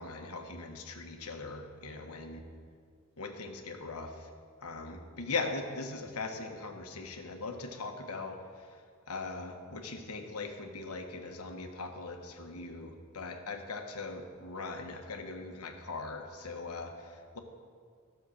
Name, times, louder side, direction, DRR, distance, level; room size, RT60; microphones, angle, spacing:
voice 1, 0.0-2.4 3.2-4.1 4.6-8.4 9.1-17.4, left 3 dB, 85° left, 4 dB, 1.3 m, -40 dB
14.5 x 6.7 x 6.4 m, 2.1 s
head